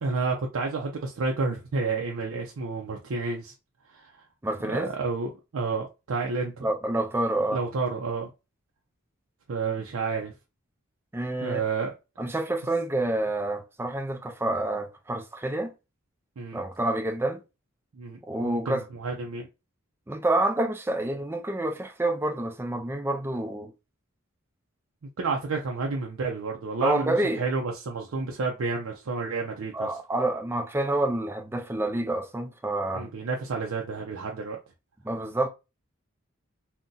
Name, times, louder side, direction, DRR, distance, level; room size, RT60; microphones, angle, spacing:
voice 1, 0.0-3.5 3.9-4.1 4.7-6.7 7.5-8.3 9.5-10.3 11.4-11.9 16.4-16.6 18.0-19.5 25.2-29.9 32.9-34.6, right 4 dB, 85° right, 0.5 m, -30 dB
voice 2, 4.4-4.9 6.6-7.6 11.1-11.6 12.2-15.7 16.5-17.4 18.3-18.8 20.1-23.7 26.8-27.4 29.7-33.1 35.0-35.5, right 1 dB, 10° right, 0.4 m, -28 dB
2.6 x 2.1 x 3.8 m
head